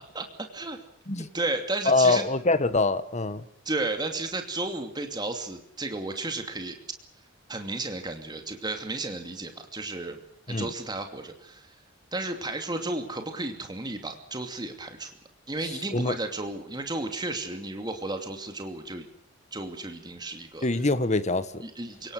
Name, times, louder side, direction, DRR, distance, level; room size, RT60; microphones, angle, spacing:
voice 1, 0.1-0.8 1.2-2.3 3.6-6.8 7.5-10.2 10.5-11.7 12.1-15.1 15.5-19.1 19.5-20.7 21.6-22.1, right 2 dB, 20° right, 6 dB, 2.7 m, -33 dB
voice 2, 1.9-3.4 10.5-10.7 15.9-16.1 20.6-21.6, left 3 dB, 35° left, 13 dB, 1.5 m, -24 dB
30.0 x 18.0 x 6.5 m, 0.65 s
head